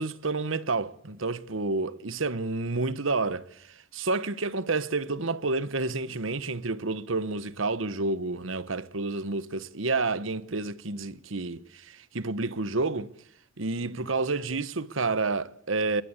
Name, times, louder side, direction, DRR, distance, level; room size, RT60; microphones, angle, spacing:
voice 1, 0.0-3.6 3.9-13.1 13.6-16.0, right 3 dB, 85° right, 1.2 m, -29 dB
22.0 x 18.5 x 8.3 m
head